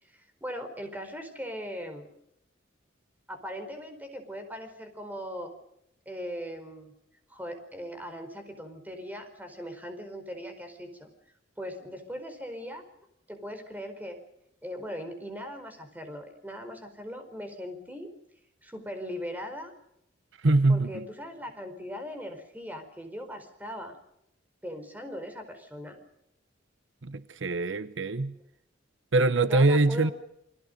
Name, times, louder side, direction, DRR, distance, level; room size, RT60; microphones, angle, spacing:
voice 1, 0.0-2.1 3.3-5.5 6.1-6.9 7.3-11.1 11.6-12.8 13.3-14.2 14.6-18.1 18.6-19.7 20.7-24.0 24.6-26.0 28.3-28.4 29.5-30.1, equal, 10° right, 4.6 m, -39 dB
voice 2, 20.4-21.0 27.0-28.4 29.1-30.1, right 2 dB, 75° right, 0.9 m, -23 dB
29.0 x 22.0 x 5.3 m
head